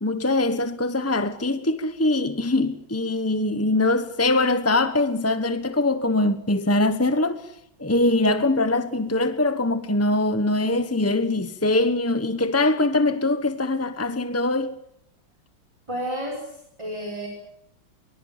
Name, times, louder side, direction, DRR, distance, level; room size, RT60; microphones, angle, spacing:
voice 1, 0.0-7.5 7.8-14.8, left 2 dB, 15° left, 0.5 m, -22 dB
voice 2, 15.9-17.3, equal, 15° right, 5.1 m, -31 dB
24.0 x 23.0 x 7.2 m
omnidirectional pair, 2.2 m